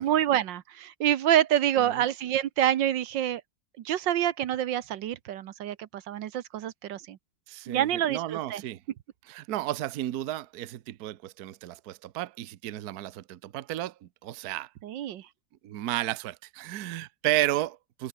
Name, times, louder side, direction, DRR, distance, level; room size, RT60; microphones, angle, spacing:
voice 1, 0.0-3.4 3.9-7.2 7.7-8.6 14.8-15.2, right 11 dB, 80° right, 1.6 m, -27 dB
voice 2, 7.5-8.8 9.3-14.7 15.6-18.1, right 14 dB, 60° right, 1.2 m, -33 dB
omnidirectional pair, 2.0 m